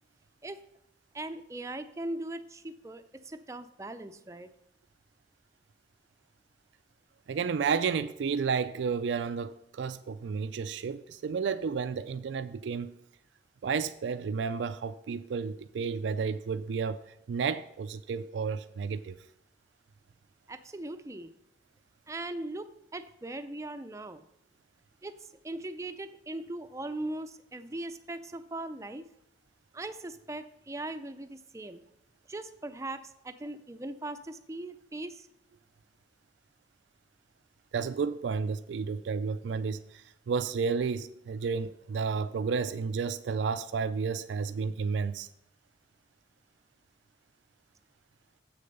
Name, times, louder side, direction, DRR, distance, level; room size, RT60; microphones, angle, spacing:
voice 1, 1.1-4.5 20.5-21.3 22.1-22.7 22.9-24.2 25.0-29.1 29.7-31.8 32.3-35.3, right 2 dB, 15° right, 0.4 m, -39 dB
voice 2, 7.3-12.9 13.6-17.0 17.3-19.2 37.7-45.3, right 5 dB, 85° right, 0.4 m, -31 dB
7.6 x 6.6 x 5.3 m
head